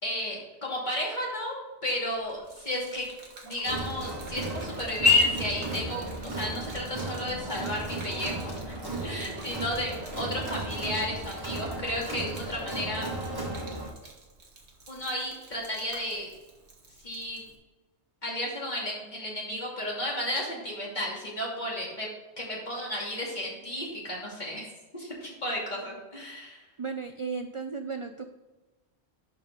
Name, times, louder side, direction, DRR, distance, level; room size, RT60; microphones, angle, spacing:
voice 1, 0.0-1.5 1.8-3.0 3.4-8.7 9.0-13.1 14.9-16.3 17.0-17.4 18.2-22.1 22.4-24.7 24.9-26.6, left 1 dB, 40° left, -4 dB, 2.9 m, -32 dB
Gurgling / Liquid, 2.1-17.6, right 3 dB, 80° right, 1.7 m, -50 dB
Crowd, 3.7-13.9, right 2 dB, 20° right, 1.7 m, -35 dB
voice 2, 26.8-28.2, right 5 dB, 45° right, 7 dB, 0.4 m, -35 dB
11.0 x 5.2 x 3.7 m, 1.2 s
omnidirectional pair, 1.1 m